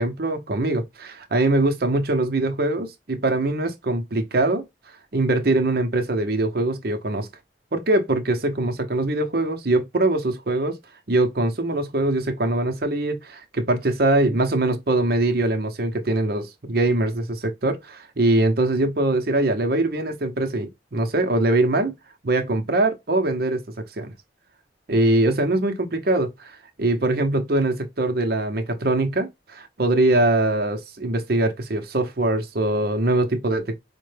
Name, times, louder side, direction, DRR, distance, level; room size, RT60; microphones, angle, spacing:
voice 1, 0.0-4.6 5.1-7.3 7.7-10.8 11.1-21.9 22.2-23.6 24.0-24.1 24.9-33.8, right 2 dB, 55° right, 0.8 m, -22 dB
5.1 x 2.2 x 3.2 m
head